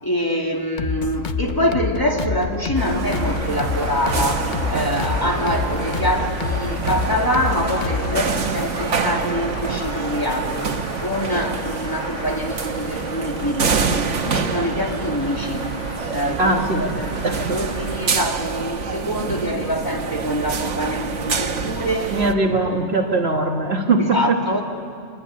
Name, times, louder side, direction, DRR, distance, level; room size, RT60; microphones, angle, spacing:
voice 1, 0.0-10.6 11.0-14.0 14.2-15.7 16.1-17.2 17.5-22.1 22.4-22.9 24.1-24.6, equal, 15° left, 0 dB, 2.7 m, -25 dB
sound 1, 0.8-8.3, left 6 dB, 45° left, 1.0 m, -27 dB
sound 2, 2.8-22.3, right 5 dB, 85° right, 1.5 m, -27 dB
sound 3, 3.0-18.3, right 1 dB, 25° right, 3.1 m, -35 dB
voice 2, 16.4-17.6 22.1-24.4, right 3 dB, 60° right, 3 dB, 1.8 m, -21 dB
26.5 x 22.5 x 9.6 m, 2.3 s
omnidirectional pair, 1.2 m